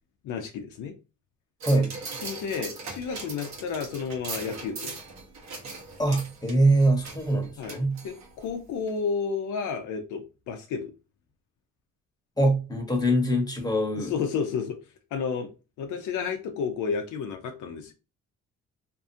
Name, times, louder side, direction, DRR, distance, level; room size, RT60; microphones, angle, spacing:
voice 1, 0.2-0.9 2.2-4.9 7.6-7.8 8.0-10.9 14.0-14.8 15.1-15.5 15.8-17.9, left 6 dB, 80° left, 0.6 m, -31 dB
voice 2, 1.6-2.0 6.0-8.0 12.4-14.1, right 1 dB, 15° left, 1.0 m, -23 dB
sound 1, 1.6-8.5 8.9-9.0, right 3 dB, 65° right, 1.0 m, -40 dB
2.6 x 2.4 x 2.6 m
cardioid pair, 90°, 30 cm